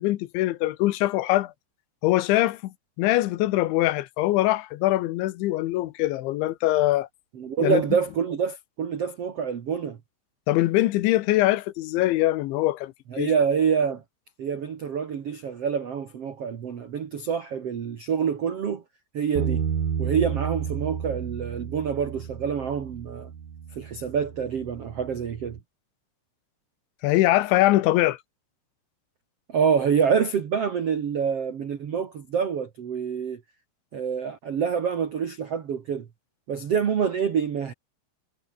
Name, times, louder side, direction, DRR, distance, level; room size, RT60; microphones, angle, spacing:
voice 1, 0.0-1.5 2.0-7.1 7.6-7.8 10.5-13.3 27.0-28.2, left 16 dB, 80° left, 3.2 m, -23 dB
voice 2, 7.3-10.0 13.1-14.0 14.4-18.8 19.1-19.6 20.0-23.3 23.7-25.6 29.5-33.4 33.9-36.1 36.5-37.7, right 7 dB, 70° right, 1.4 m, -26 dB
Bass guitar, 19.4-25.6, right 8 dB, 50° right, 3.6 m, -32 dB
omnidirectional pair, 5.6 m